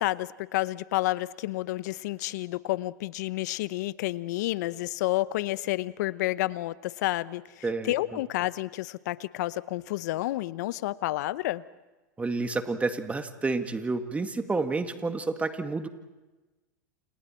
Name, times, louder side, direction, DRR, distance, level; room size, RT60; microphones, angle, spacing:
voice 1, 0.0-11.6, left 17 dB, 65° left, 17 dB, 0.8 m, -30 dB
voice 2, 7.6-7.9 12.2-15.9, right 3 dB, 15° right, 7 dB, 2.0 m, -29 dB
29.5 x 29.0 x 4.5 m, 1.1 s
hypercardioid pair, 100°, 10 cm